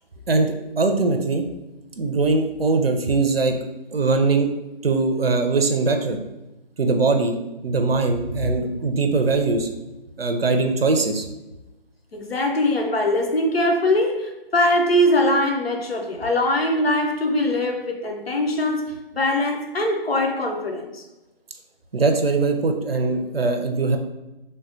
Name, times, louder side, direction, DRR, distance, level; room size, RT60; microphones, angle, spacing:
voice 1, 0.3-1.4 2.0-3.6 3.9-4.5 4.8-6.2 6.8-7.3 7.6-9.7 10.2-11.3 21.9-24.0, right 3 dB, 80° right, 0.5 m, -21 dB
voice 2, 12.1-21.0, left 1 dB, 85° left, 0.7 m, -22 dB
3.3 x 2.2 x 2.6 m
figure-of-eight pair, 175°, 29 cm